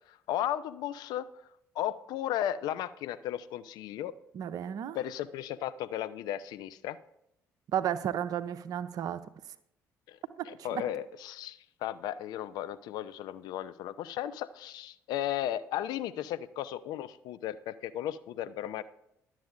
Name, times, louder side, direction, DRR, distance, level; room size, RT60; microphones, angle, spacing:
voice 1, 0.1-1.3 1.7-4.1 4.9-7.0 10.1-10.2 10.4-18.8, left 11 dB, 55° left, 14 dB, 0.4 m, -35 dB
voice 2, 4.3-5.0 7.7-9.2 10.7-10.8, right 9 dB, 50° right, 12 dB, 0.5 m, -32 dB
11.5 x 7.3 x 3.6 m, 0.79 s
figure-of-eight pair, 50°, 8 cm